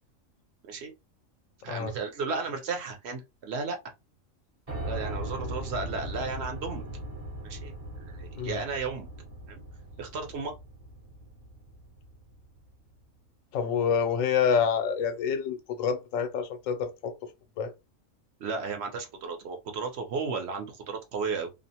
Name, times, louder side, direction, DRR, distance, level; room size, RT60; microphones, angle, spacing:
voice 1, 1.6-3.8 4.9-6.8 7.4-7.7 8.1-9.1 9.5-9.6 10.0-10.5 18.4-21.5, right 4 dB, 60° right, 0.9 m, -34 dB
Piano, 4.7-12.7, right 1 dB, 35° right, 0.7 m, -39 dB
voice 2, 13.5-17.1 17.6-17.7, left 6 dB, 85° left, 1.0 m, -27 dB
2.5 x 2.0 x 2.7 m
omnidirectional pair, 1.3 m